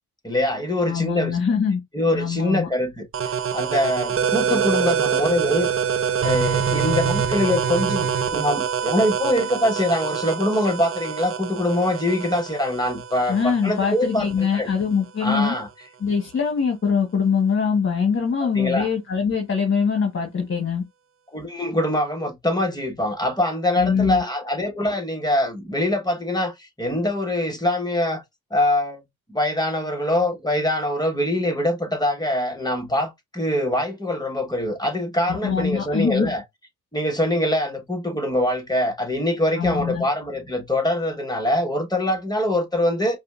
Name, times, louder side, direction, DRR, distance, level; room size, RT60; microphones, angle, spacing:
voice 1, 0.2-1.4 1.9-5.7 6.2-14.3 14.5-14.7 15.2-15.7 18.4-18.9 21.3-28.2 28.5-29.0 29.3-36.4 36.9-43.2, left 1 dB, 10° left, 1.3 m, -23 dB
voice 2, 0.8-1.8 2.1-2.7 13.3-15.5 16.0-20.8 23.8-24.2 35.3-36.3 39.6-40.1, left 6 dB, 40° left, 1.3 m, -23 dB
sound 1, 3.1-14.5, right 7 dB, 40° right, 0.6 m, -25 dB
4.9 x 2.3 x 2.4 m
cardioid pair, 70°, 32 cm